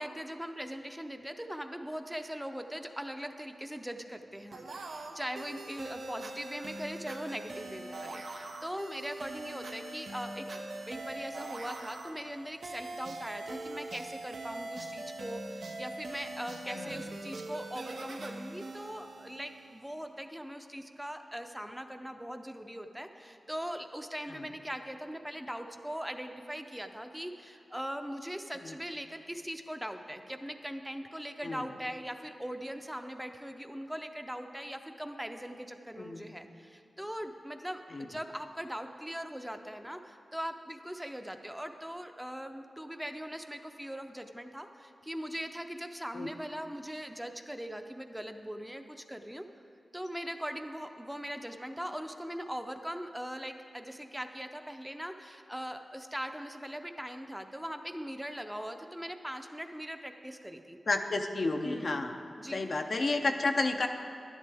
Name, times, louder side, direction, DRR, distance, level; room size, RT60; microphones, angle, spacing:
voice 1, 0.0-49.5 49.9-60.8 61.6-62.0 62.4-62.7, equal, 5° right, 6 dB, 0.6 m, -40 dB
sound 1, 4.5-20.0, right 2 dB, 80° right, 0.7 m, -42 dB
voice 2, 16.7-17.0 24.3-24.5 28.6-28.7 31.4-31.7 36.0-36.3 37.9-38.1 46.1-46.3 60.9-62.2 62.5-63.9, left 3 dB, 60° left, 5 dB, 0.6 m, -31 dB
11.0 x 10.5 x 3.5 m, 2.5 s
cardioid pair, 50°, 0 cm